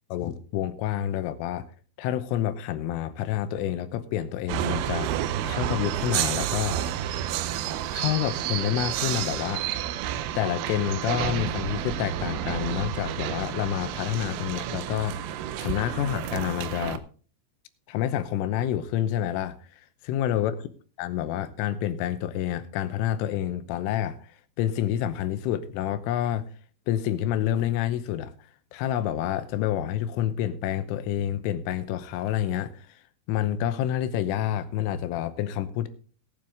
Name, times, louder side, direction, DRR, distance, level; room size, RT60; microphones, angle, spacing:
voice 1, 0.1-1.7 2.0-5.1 5.4-6.8 7.9-9.6 10.4-15.2 15.6-17.0 17.9-19.6 20.0-20.7 21.0-24.2 24.6-26.5 26.9-28.3 28.7-32.9 33.3-35.9, left 11 dB, 80° left, 12 dB, 3.3 m, -28 dB
sound 1, 4.5-17.0, right 11 dB, 85° right, 2.4 m, -30 dB
19.0 x 7.7 x 3.6 m, 0.40 s
omnidirectional pair, 5.8 m